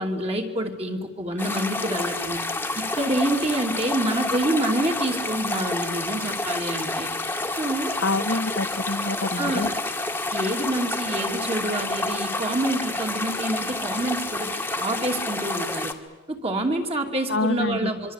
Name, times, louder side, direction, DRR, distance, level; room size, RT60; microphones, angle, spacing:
voice 1, 0.0-2.4 2.8-7.1 7.5-7.9 9.4-9.7 10.3-15.9 16.3-18.1, right 1 dB, 30° right, 3 dB, 2.8 m, -27 dB
sound 1, 1.4-15.9, left 2 dB, 10° left, 1.7 m, -29 dB
voice 2, 8.0-9.7 17.3-17.9, left 2 dB, 75° left, 12 dB, 1.6 m, -26 dB
26.0 x 24.0 x 8.3 m, 1.2 s
head